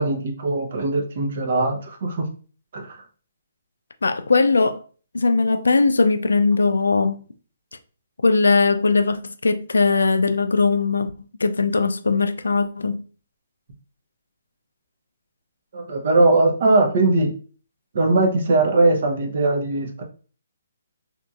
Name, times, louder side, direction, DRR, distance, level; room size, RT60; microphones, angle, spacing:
voice 1, 0.0-2.3 2.7-3.0 15.7-17.3 17.9-20.0, right 2 dB, 60° right, 0.7 m, -20 dB
voice 2, 4.0-4.8 5.1-7.2 8.2-11.1 11.4-13.0, left 4 dB, 90° left, 0.3 m, -19 dB
2.8 x 2.6 x 2.3 m
hypercardioid pair, 150°, 0 cm